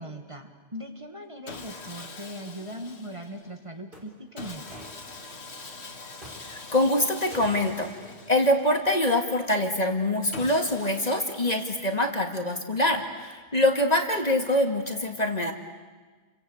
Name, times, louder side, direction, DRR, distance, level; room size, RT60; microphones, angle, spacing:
voice 1, 0.0-4.9, equal, 30° right, 4 dB, 2.1 m, -40 dB
Sawing, 1.5-3.5 4.4-8.9 10.3-12.1, left 3 dB, 70° left, 2.1 m, -44 dB
sound 1, 3.4-3.5 3.9-5.4 6.2-6.9 7.3-8.4 8.6-8.8, equal, 50° right, 5.1 m, -47 dB
voice 2, 6.4-7.9 8.3-15.5, left 1 dB, 35° left, 4 dB, 2.3 m, -24 dB
29.5 x 24.5 x 8.1 m, 1.4 s
omnidirectional pair, 1.1 m